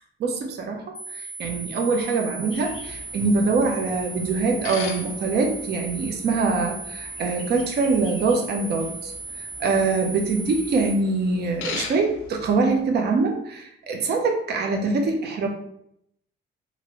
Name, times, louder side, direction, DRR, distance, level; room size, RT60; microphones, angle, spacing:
voice 1, 0.2-15.5, right 4 dB, 55° right, 3 dB, 0.6 m, -24 dB
sound 1, 0.9-10.9, right 4 dB, 15° left, 0.7 m, -37 dB
sound 2, 2.5-12.8, left 6 dB, 85° left, 0.4 m, -41 dB
3.0 x 2.5 x 2.9 m, 0.74 s
cardioid pair, 90°, 20 cm